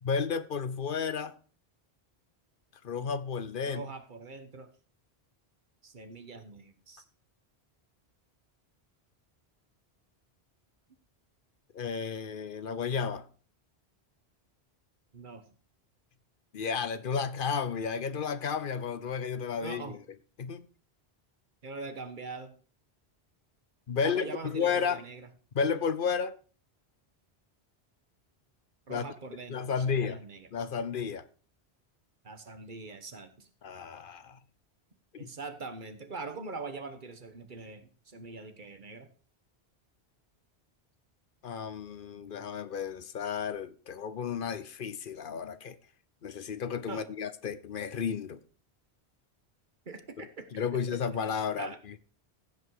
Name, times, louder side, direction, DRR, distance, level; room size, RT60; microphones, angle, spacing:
voice 1, 0.0-1.3 2.8-3.8 11.7-13.3 16.5-20.0 20.4-20.7 23.9-25.0 25.5-26.3 28.9-29.1 29.5-30.2 30.5-31.2 33.6-34.4 35.2-35.3 41.4-45.8 46.2-48.4 50.2-50.3 50.5-51.7, left 6 dB, 60° left, 0.9 m, -32 dB
voice 2, 3.6-4.7 5.8-7.0 15.1-15.4 19.6-20.0 21.6-22.6 24.0-25.3 28.9-30.5 32.2-33.5 35.2-39.1 46.9-47.0 49.8-50.5 50.7-51.0 51.6-51.8, right 4 dB, 50° right, 1.4 m, -43 dB
15.5 x 5.4 x 4.7 m
omnidirectional pair, 1.1 m